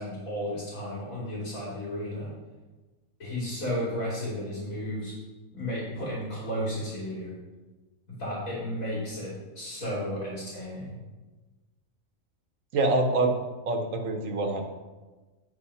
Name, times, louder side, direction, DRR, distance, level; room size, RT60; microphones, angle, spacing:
voice 1, 0.0-2.3 3.2-5.1 5.5-7.4 8.1-10.9, equal, 90° left, -6 dB, 3.0 m, -33 dB
voice 2, 12.7-13.4 13.7-14.6, right 2 dB, 75° right, 3 dB, 1.3 m, -25 dB
9.0 x 4.8 x 5.5 m, 1.2 s
omnidirectional pair, 1.4 m